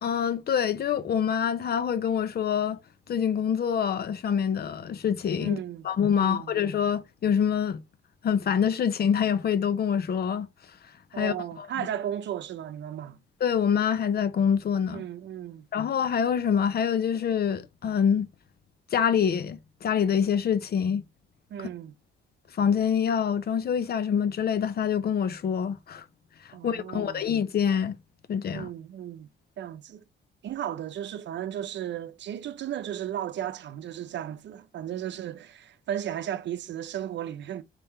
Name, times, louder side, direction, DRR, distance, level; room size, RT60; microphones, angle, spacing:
voice 1, 0.0-2.8 3.1-5.6 5.8-7.8 8.2-10.5 11.1-11.7 13.4-15.0 15.7-18.3 18.9-21.0 21.6-21.7 22.6-26.0 26.6-27.9 28.3-28.7, left 7 dB, 50° left, 0.7 m, -25 dB
voice 2, 5.4-5.9 6.1-6.5 11.1-13.2 14.9-15.7 21.5-21.9 26.5-27.2 28.5-29.3 29.6-30.0 30.4-37.6, right 10 dB, 65° right, 0.6 m, -35 dB
4.2 x 3.5 x 2.8 m
cardioid pair, 90°, 20 cm